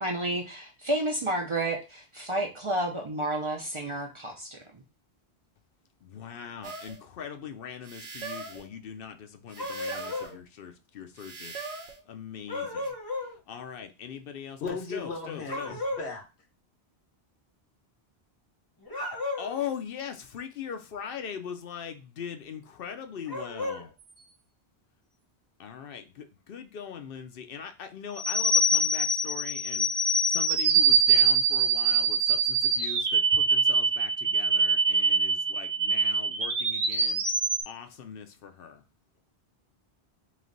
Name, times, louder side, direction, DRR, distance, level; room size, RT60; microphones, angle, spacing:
voice 1, 0.0-4.8, right 1 dB, 35° right, 0.6 m, -31 dB
voice 2, 6.0-15.8 19.1-23.9 25.6-38.8, left 7 dB, 65° left, 0.8 m, -41 dB
sound 1, 6.6-7.0 7.8-8.7 9.5-10.3 11.2-12.0 12.8-12.9, right 4 dB, 90° right, 1.0 m, -40 dB
sound 2, 9.6-10.4 12.5-13.3 15.5-16.1 18.8-19.6 23.3-23.8, left 2 dB, 25° left, 0.9 m, -34 dB
voice 3, 14.6-16.3, left 4 dB, 85° left, 1.4 m, -36 dB
sound 3, 28.2-37.6, right 4 dB, 60° right, 0.9 m, -24 dB
3.2 x 3.1 x 3.8 m
omnidirectional pair, 1.1 m